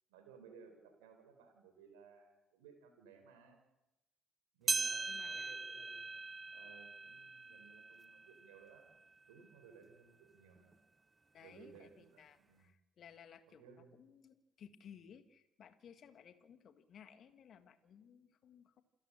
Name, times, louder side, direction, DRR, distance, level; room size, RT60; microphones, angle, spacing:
voice 1, 0.1-3.6 4.5-6.1 6.5-8.9 9.3-10.8 11.4-12.7 13.5-14.0, right 6 dB, 75° right, 5 dB, 4.1 m, -60 dB
sound 1, 4.7-9.3 9.8-9.9 10.7-10.8 11.8-11.9, right 3 dB, 25° right, 0.7 m, -41 dB
voice 2, 5.1-5.5 11.3-13.6 13.9-18.8, left 8 dB, 50° left, 11 dB, 1.8 m, -59 dB
28.0 x 13.0 x 7.6 m, 0.96 s
figure-of-eight pair, 50°, 0 cm